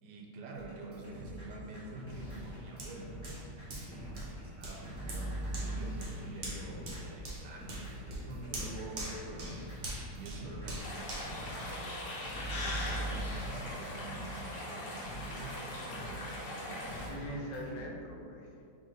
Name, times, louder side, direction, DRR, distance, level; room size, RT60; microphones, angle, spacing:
voice 1, 0.0-3.1 3.8-9.6 10.1-17.4, right 3 dB, 75° right, 0 dB, 1.2 m, -47 dB
sound 1, 0.5-17.8, equal, 10° left, 1.0 m, -43 dB
Hands, 2.8-12.3 12.8-12.9, right 1 dB, 50° right, 1.0 m, -44 dB
sound 2, 10.8-17.1, left 1 dB, 70° left, 1.5 m, -41 dB
voice 2, 17.1-18.7, left 1 dB, 90° left, -1 dB, 1.4 m, -43 dB
3.9 x 3.5 x 3.7 m, 2.5 s
omnidirectional pair, 1.9 m